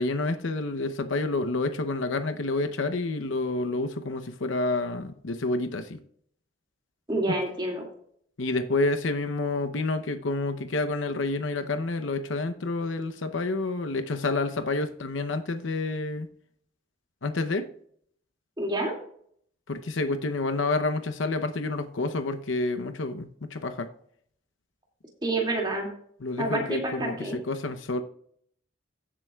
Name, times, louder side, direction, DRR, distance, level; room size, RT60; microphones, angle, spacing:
voice 1, 0.0-6.0 8.4-16.3 17.2-17.7 19.7-23.9 26.2-28.0, left 2 dB, 90° left, 0.8 m, -29 dB
voice 2, 7.1-7.9 18.6-18.9 25.2-25.9 26.4-27.4, right 2 dB, 25° right, 2.3 m, -28 dB
16.5 x 7.6 x 2.3 m
head